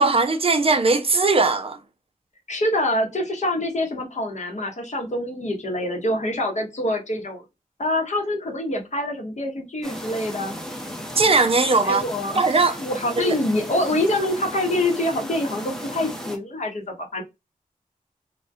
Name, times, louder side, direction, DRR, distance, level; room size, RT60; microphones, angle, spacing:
voice 1, 0.0-1.8 11.2-12.0 12.3-12.8 13.2-13.3, right 3 dB, 40° right, 0.4 m, -19 dB
voice 2, 2.5-7.4 7.8-10.6 11.8-12.4 12.8-17.2, left 1 dB, 55° left, 0.8 m, -25 dB
sound 1, 9.8-16.4, equal, 5° left, 0.6 m, -35 dB
2.3 x 2.1 x 2.5 m
wide cardioid pair, 75°, 15 cm